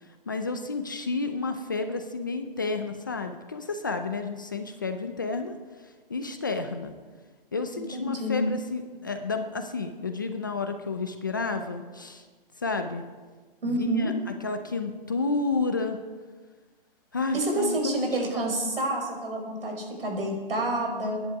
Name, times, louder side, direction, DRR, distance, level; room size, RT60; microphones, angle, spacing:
voice 1, 0.3-5.6 6.1-6.9 7.5-12.3 12.6-13.0 13.7-14.1 14.4-16.0 17.1-18.0 18.3-18.4, left 3 dB, 20° left, 7 dB, 0.5 m, -31 dB
voice 2, 7.7-8.4 13.6-14.1 17.3-21.2, right 1 dB, 80° right, 1 dB, 5.7 m, -28 dB
22.5 x 10.5 x 4.7 m, 1.4 s
hypercardioid pair, 170°, 29 cm